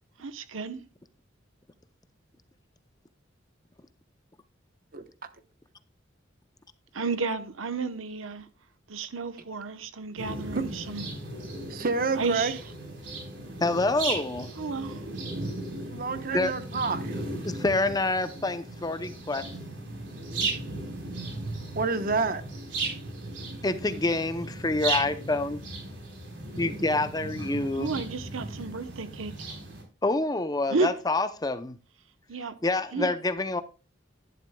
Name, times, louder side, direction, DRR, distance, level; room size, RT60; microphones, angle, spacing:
voice 1, 0.2-0.8 6.9-8.5 8.9-11.1 12.1-12.6 14.6-15.0 27.7-29.3 30.7-30.9 32.3-32.5 32.9-33.1, right 4 dB, 90° right, 1.0 m, -32 dB
sound 1, 10.2-29.8, right 2 dB, 65° right, 4.1 m, -36 dB
voice 2, 11.7-12.6 15.9-17.1 21.8-22.4 27.6-27.7, right 4 dB, 45° right, 1.0 m, -28 dB
voice 3, 13.6-14.5 16.3-16.5 17.4-19.5 23.6-25.6 26.6-27.9 30.0-31.8 32.6-33.6, left 2 dB, 20° left, 0.6 m, -27 dB
12.5 x 10.5 x 2.3 m
head